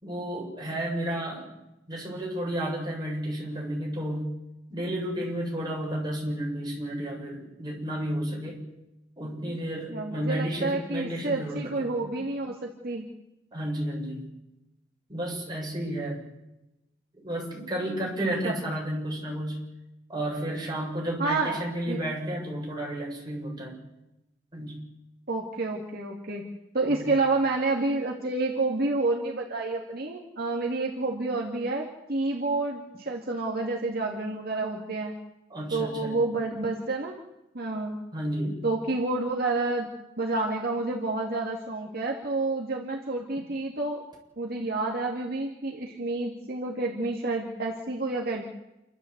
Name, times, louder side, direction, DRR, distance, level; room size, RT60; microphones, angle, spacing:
voice 1, 0.0-1.5 1.9-4.3 4.7-8.6 9.2-11.9 13.5-14.2 15.1-16.2 17.2-19.6 20.1-23.8 24.5-24.8 26.9-27.1 35.5-36.2 38.1-38.6, right 1 dB, 25° right, -2 dB, 7.2 m, -32 dB
voice 2, 9.9-13.1 18.4-18.5 21.2-21.6 21.9-22.0 25.3-26.4 26.7-35.2 35.7-37.2 37.5-38.0 38.6-44.0 44.4-48.4, right 2 dB, 55° right, -1 dB, 2.4 m, -29 dB
28.5 x 13.0 x 8.2 m, 0.92 s
head